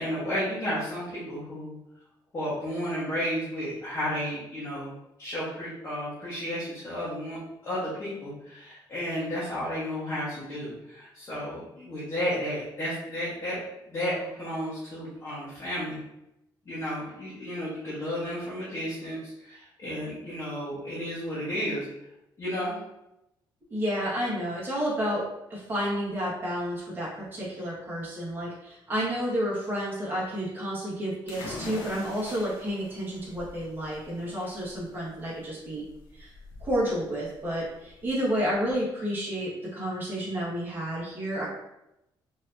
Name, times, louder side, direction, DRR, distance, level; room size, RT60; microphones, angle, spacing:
voice 1, 0.0-1.8 2.3-4.9 5.2-16.0 16.6-21.9 22.4-22.8, equal, 30° left, -10 dB, 1.2 m, -32 dB
voice 2, 23.7-35.8 36.1-36.3 36.6-41.5, equal, 25° right, -7 dB, 1.5 m, -30 dB
sound 1, 31.3-38.8, left 2 dB, 85° left, 0.9 m, -45 dB
4.6 x 2.9 x 2.6 m, 0.87 s
cardioid pair, 170°, 9 cm